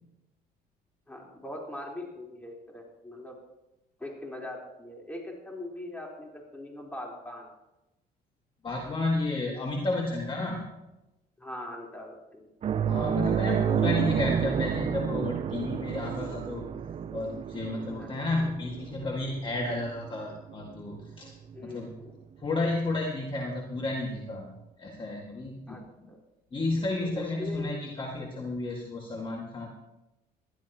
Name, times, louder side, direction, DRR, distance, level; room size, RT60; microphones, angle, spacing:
voice 1, 1.1-3.3 4.0-7.5 11.4-12.5 13.8-14.0 18.0-18.1 21.5-22.1 25.7-25.8 26.1-26.2 27.0-27.7, left 1 dB, 10° left, -2 dB, 3.9 m, -41 dB
voice 2, 8.6-10.6 12.9-16.6 17.1-21.3 21.6-21.9 22.4-24.5 24.8-25.8 26.5-29.7, left 2 dB, 30° left, 0 dB, 1.9 m, -32 dB
sound 1, 12.6-21.6 21.9-22.1 24.1-24.2, right 8 dB, 40° right, 0.5 m, -30 dB
20.0 x 12.5 x 2.9 m, 0.97 s
cardioid pair, 110°, 17 cm